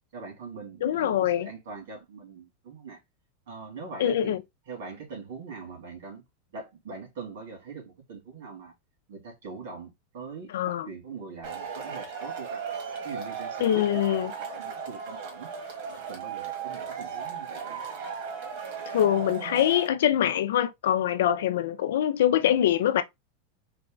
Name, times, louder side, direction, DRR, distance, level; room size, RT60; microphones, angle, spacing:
voice 1, 0.1-3.0 3.5-4.4 4.7-6.2 6.5-8.7 9.1-12.6 13.0-15.5 15.9-17.8, right 4 dB, 80° right, 2.5 m, -42 dB
voice 2, 0.8-1.5 4.0-4.4 10.5-10.9 13.6-14.3 18.9-23.0, left 11 dB, 80° left, 0.5 m, -24 dB
Male speech man speaking / Shout / Clapping, 11.4-19.9, right 6 dB, 65° right, 1.5 m, -36 dB
4.1 x 2.3 x 3.7 m
supercardioid pair, 135°, 0 cm